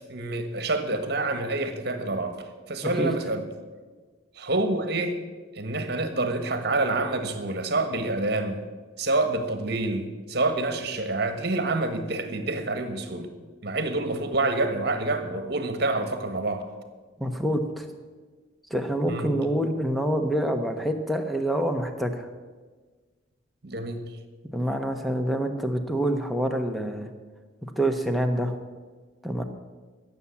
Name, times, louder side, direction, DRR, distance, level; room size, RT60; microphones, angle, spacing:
voice 1, 0.1-3.5 4.4-5.2 5.5-8.6 9.0-13.3 13.6-16.6 19.1-19.4 23.6-24.1, right 2 dB, 50° right, 8 dB, 1.5 m, -27 dB
voice 2, 17.2-17.9 18.7-22.3 24.5-27.1 27.6-28.5 29.2-29.4, right 1 dB, ahead, 5 dB, 1.0 m, -26 dB
16.0 x 7.3 x 8.4 m, 1.4 s
head